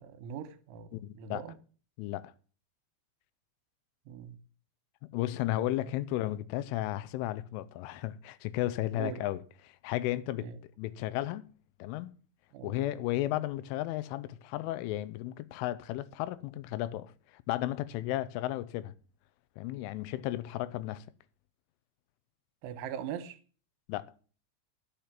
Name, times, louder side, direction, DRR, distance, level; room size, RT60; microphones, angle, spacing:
voice 1, 0.0-1.6 4.1-4.4 5.8-5.9 8.9-9.2 10.4-10.6 12.5-12.7 22.6-23.4, right 9 dB, 85° right, 3.5 m, -41 dB
voice 2, 0.9-1.5 2.0-2.3 5.1-11.5 11.8-12.2 12.6-18.9 19.6-21.1 23.9-24.1, left 15 dB, 90° left, 3.2 m, -34 dB
10.5 x 7.1 x 7.3 m
omnidirectional pair, 5.5 m